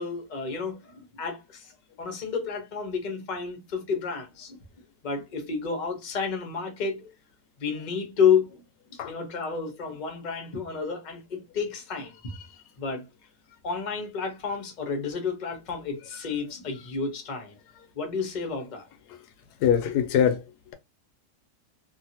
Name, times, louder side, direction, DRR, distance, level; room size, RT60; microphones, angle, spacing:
voice 1, 0.0-1.7 2.0-4.6 5.0-7.1 7.6-8.6 8.9-12.1 12.8-13.1 13.6-17.6 18.0-18.9, left 6 dB, 35° left, 0.8 m, -30 dB
voice 2, 19.6-20.4, left 8 dB, 80° left, 1.1 m, -22 dB
2.8 x 2.6 x 2.7 m
omnidirectional pair, 1.7 m